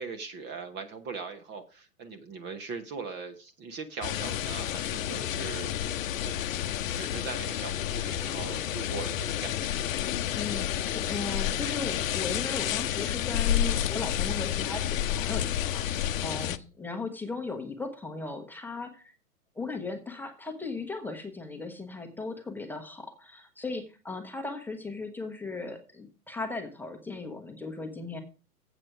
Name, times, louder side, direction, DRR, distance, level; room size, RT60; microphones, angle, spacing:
voice 1, 0.0-5.7 6.2-6.3 6.9-10.0, right 4 dB, 25° right, 7 dB, 0.9 m, -40 dB
sound 1, 4.0-16.6, left 11 dB, 55° left, 0.8 m, -30 dB
voice 2, 10.3-19.1 19.5-28.2, left 3 dB, 5° left, 4 dB, 1.0 m, -37 dB
8.0 x 6.5 x 6.0 m, 0.35 s
hypercardioid pair, 120°, 46 cm